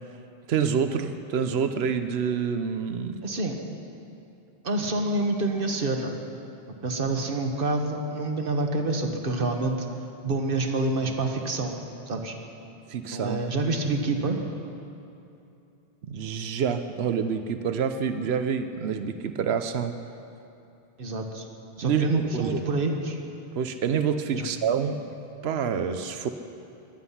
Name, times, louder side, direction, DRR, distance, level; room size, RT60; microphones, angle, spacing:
voice 1, 0.5-3.2 12.9-13.4 16.0-20.0 21.8-22.6 23.5-25.1 25.4-26.3, right 7 dB, 85° right, 9 dB, 1.0 m, -27 dB
voice 2, 3.2-3.6 4.6-6.1 6.8-9.8 10.2-11.7 12.1-12.3 13.1-14.4 21.0-21.4 21.8-23.2 24.3-24.4, right 2 dB, 60° right, 4 dB, 1.5 m, -27 dB
23.0 x 9.8 x 5.7 m, 2.7 s
omnidirectional pair, 1.0 m